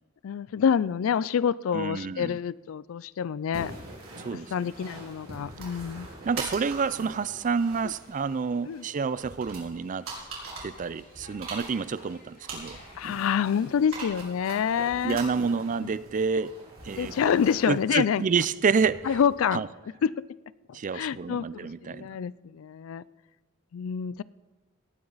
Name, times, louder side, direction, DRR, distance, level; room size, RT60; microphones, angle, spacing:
voice 1, 0.2-3.7 4.5-6.1 7.8-7.9 8.7-8.9 13.0-15.2 15.8-15.9 17.0-18.2 19.0-19.6 20.0-20.2 20.7-23.0 23.7-24.2, left 7 dB, 70° left, 20 dB, 0.3 m, -27 dB
voice 2, 1.7-2.4 4.2-4.5 6.3-10.1 10.6-12.8 15.0-17.3 17.7-19.1 19.5-19.7 20.7-22.1, right 5 dB, 40° right, 17 dB, 0.4 m, -28 dB
sound 1, 3.5-19.3, right 2 dB, 85° right, 4.2 m, -43 dB
sound 2, 7.8-13.3, left 2 dB, 45° left, 2.9 m, -57 dB
18.0 x 9.8 x 4.0 m, 1.2 s
head